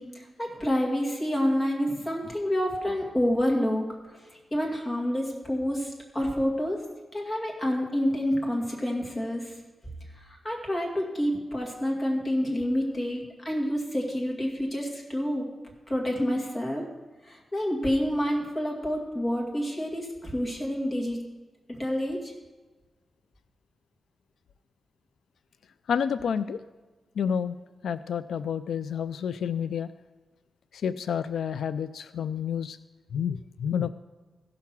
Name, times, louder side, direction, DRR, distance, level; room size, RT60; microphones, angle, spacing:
voice 1, 0.0-6.8 7.1-9.5 10.1-15.5 15.9-16.9 17.2-21.2 21.7-22.3, equal, 20° left, -1 dB, 2.1 m, -28 dB
voice 2, 25.9-26.6 27.2-27.6 27.8-29.9 30.7-32.8 33.1-33.9, left 7 dB, 90° left, 12 dB, 0.3 m, -29 dB
15.0 x 5.8 x 6.0 m, 1.3 s
wide cardioid pair, 160°, 0 cm